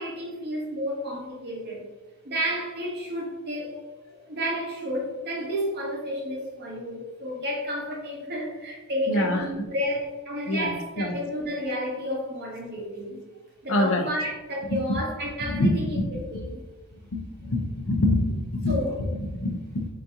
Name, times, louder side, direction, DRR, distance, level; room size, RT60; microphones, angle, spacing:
voice 1, 0.0-1.8 2.2-3.8 4.3-13.2 13.6-16.6 18.6-18.9, equal, 50° right, -1 dB, 1.1 m, -31 dB
voice 2, 9.1-9.5 10.5-11.2 13.7-14.1 14.7-15.0 15.5-16.0 17.1-19.9, left 1 dB, 65° left, 4 dB, 0.6 m, -26 dB
4.0 x 2.8 x 3.6 m, 1.2 s
head